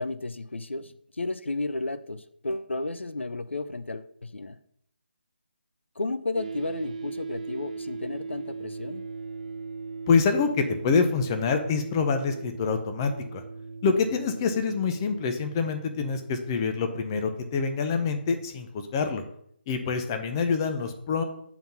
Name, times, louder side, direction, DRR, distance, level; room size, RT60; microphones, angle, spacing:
voice 1, 0.0-4.6 6.0-9.0 19.8-19.9, left 2 dB, 90° left, 12 dB, 0.5 m, -33 dB
sound 1, 6.3-18.5, right 4 dB, 40° right, 0.6 m, -39 dB
voice 2, 10.1-13.4 13.8-19.2 19.7-21.2, left 5 dB, 20° left, 7 dB, 0.6 m, -26 dB
7.0 x 3.9 x 5.9 m, 0.69 s
figure-of-eight pair, 160°, 6 cm